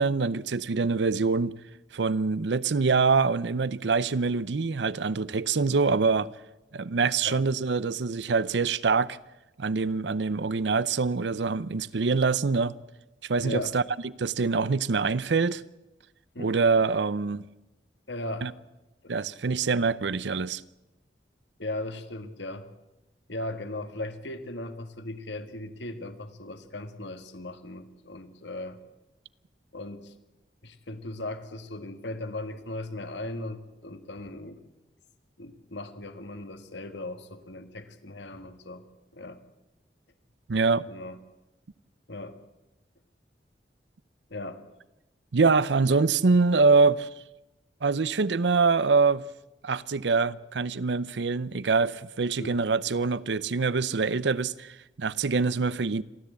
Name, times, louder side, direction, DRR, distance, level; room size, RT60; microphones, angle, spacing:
voice 1, 0.0-1.6 1.9-6.3 6.7-9.2 9.6-12.7 13.2-15.6 16.4-17.5 18.4-18.5 19.1-20.6 40.5-40.9 45.3-47.1 47.8-49.2 49.6-56.0, right 4 dB, 80° right, 0.6 m, -25 dB
voice 2, 13.4-13.8 16.3-16.5 18.1-18.5 19.0-19.1 21.6-22.7 23.3-28.8 29.7-30.1 30.6-34.6 35.4-38.8 39.1-39.4 40.9-41.2 42.1-42.4 44.3-44.6 52.4-52.6, left 2 dB, 85° left, 1.8 m, -37 dB
28.0 x 13.0 x 8.3 m
head